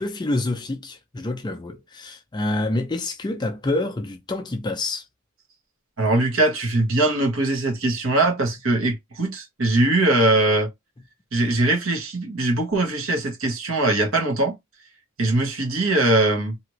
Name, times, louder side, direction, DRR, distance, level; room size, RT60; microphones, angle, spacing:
voice 1, 0.0-5.0, left 2 dB, 20° left, 0.3 m, -27 dB
voice 2, 6.0-10.7 11.3-14.5 15.2-16.5, right 2 dB, 65° right, 1.1 m, -21 dB
2.8 x 2.5 x 3.0 m
head